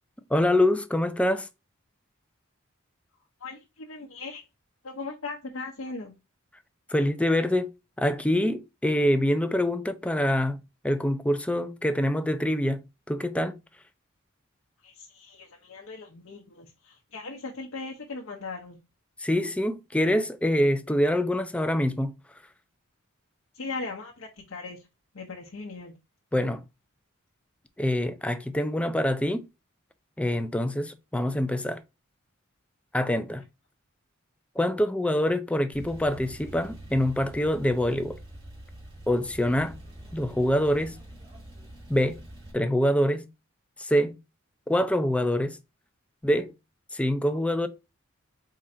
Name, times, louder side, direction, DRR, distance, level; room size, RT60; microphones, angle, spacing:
voice 1, 0.3-1.5 6.9-7.7 8.0-10.6 10.8-12.8 13.1-13.5 19.2-22.1 26.3-26.6 27.8-29.4 30.2-31.8 32.9-33.4 34.6-38.2 39.1-39.8 40.1-41.0 41.9-42.2 42.5-43.3 43.8-44.2 44.7-45.6 46.2-46.5 46.9-47.7, left 1 dB, 5° left, 0.4 m, -25 dB
voice 2, 3.4-4.4 4.8-6.1 14.8-18.8 23.6-24.8 25.1-25.9, left 3 dB, 70° left, 0.7 m, -38 dB
Male speech man speaking / Car / Idling, 35.7-42.5, right 1 dB, 25° right, 1.8 m, -45 dB
3.7 x 2.5 x 4.3 m
head